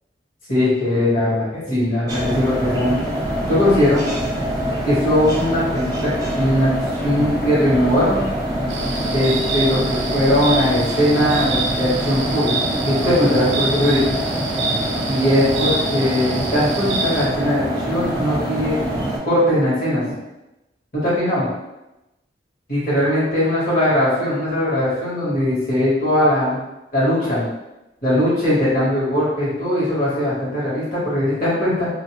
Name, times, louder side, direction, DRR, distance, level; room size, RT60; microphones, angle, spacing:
voice 1, 0.5-3.0 3.5-4.0 4.8-8.2 9.1-12.5 12.8-14.0 15.1-18.8 19.2-20.0 20.9-21.4 22.7-26.6 26.9-27.4 28.0-31.9, left 1 dB, 45° left, -9 dB, 1.3 m, -19 dB
sound 1, 2.1-19.2, equal, 20° right, 0.7 m, -24 dB
sound 2, 8.7-17.3, right 4 dB, 85° right, 0.4 m, -27 dB
2.5 x 2.1 x 2.9 m, 0.96 s
head